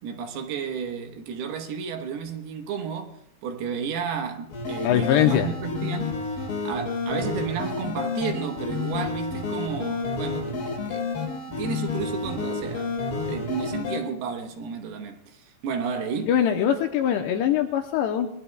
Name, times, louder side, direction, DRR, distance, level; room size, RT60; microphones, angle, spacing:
voice 1, 0.0-3.1 3.4-6.2 6.6-11.1 11.5-13.0 13.3-16.4, right 6 dB, 70° right, 2.9 m, -32 dB
sound 1, 4.5-14.0, left 4 dB, 65° left, 6.0 m, -30 dB
voice 2, 4.8-5.5 16.3-18.3, left 10 dB, 80° left, 2.7 m, -22 dB
25.0 x 20.0 x 2.3 m
omnidirectional pair, 5.2 m